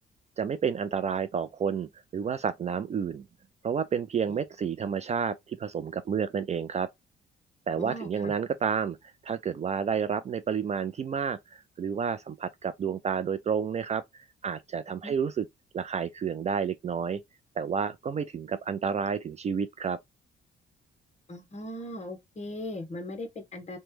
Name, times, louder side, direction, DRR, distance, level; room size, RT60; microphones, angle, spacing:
voice 1, 0.4-3.2 3.6-6.9 7.7-9.0 9.2-14.0 14.4-15.5 15.7-17.2 17.6-20.0, right 6 dB, 35° right, 0.3 m, -30 dB
voice 2, 7.8-8.3 15.0-15.1 21.3-23.8, left 1 dB, 35° left, 0.9 m, -38 dB
3.1 x 2.2 x 3.1 m
cardioid pair, 90°, 20 cm